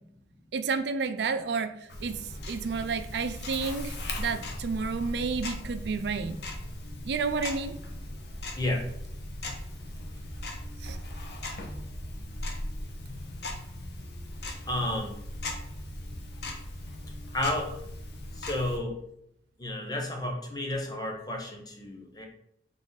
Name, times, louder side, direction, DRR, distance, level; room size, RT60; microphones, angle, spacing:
voice 1, 0.5-6.4 7.0-7.8 10.8-11.0, right 5 dB, 75° right, 9 dB, 0.4 m, -31 dB
Tick-tock, 1.9-18.8, left 1 dB, 70° left, 0.8 m, -38 dB
voice 2, 8.5-8.9 14.7-15.2 17.3-17.8 18.3-19.0 19.6-22.3, left 1 dB, 20° left, 1 dB, 0.7 m, -31 dB
3.8 x 3.6 x 3.9 m, 0.75 s
head